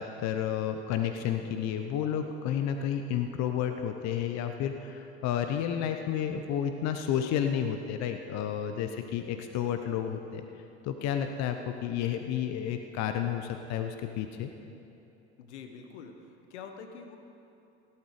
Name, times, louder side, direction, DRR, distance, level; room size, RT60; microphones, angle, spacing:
voice 1, 0.0-10.4 10.8-14.5, left 9 dB, 50° left, 6 dB, 0.9 m, -31 dB
voice 2, 15.4-16.2 16.5-17.2, left 6 dB, 75° left, 6 dB, 1.3 m, -45 dB
16.5 x 12.0 x 5.0 m, 2.9 s
hypercardioid pair, 70°, 34 cm